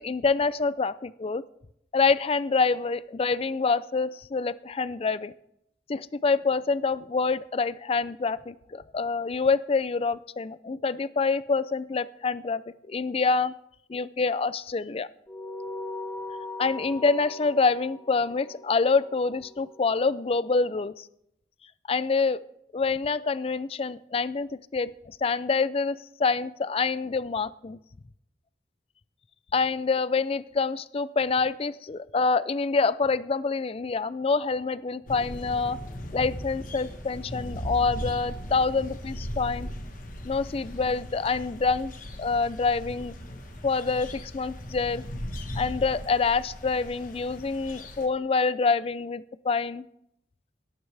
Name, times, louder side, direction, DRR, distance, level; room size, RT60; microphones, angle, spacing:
voice 1, 0.0-1.4 1.9-5.3 5.9-12.6 12.9-13.5 13.9-15.1 16.6-21.1 21.9-22.4 22.7-27.8 29.5-35.8 36.1-39.7 40.2-41.9 42.2-43.1 43.6-45.0 45.6-49.8, left 4 dB, 30° left, 17 dB, 0.4 m, -26 dB
sound 1, 15.3-20.1, left 2 dB, 10° left, 1.1 m, -40 dB
sound 2, 35.1-48.1, equal, 50° left, 1.4 m, -38 dB
18.0 x 12.0 x 3.4 m, 0.79 s
head